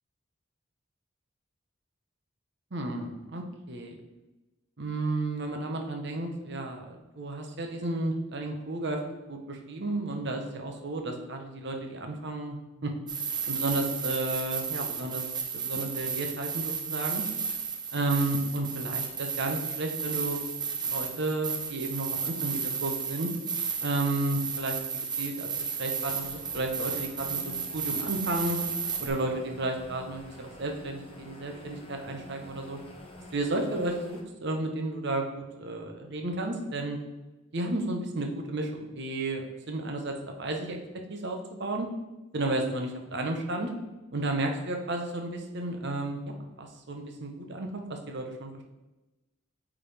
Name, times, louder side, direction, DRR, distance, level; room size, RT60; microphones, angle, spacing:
voice 1, 2.7-4.0 4.8-9.0 9.3-12.6 12.8-12.9 13.5-15.2 15.5-17.2 17.9-20.5 20.8-23.3 23.8-24.8 25.2-28.6 29.0-32.8 33.3-37.0 37.5-40.8 41.1-41.9 42.3-43.7 44.1-46.2 46.6-48.6, right 2 dB, 60° right, 3 dB, 1.0 m, -32 dB
sound 1, 13.1-29.1, right 6 dB, 20° right, 0.7 m, -33 dB
sound 2, 26.2-34.2, left 1 dB, 30° left, 0.8 m, -48 dB
8.6 x 3.7 x 3.5 m, 1.0 s
head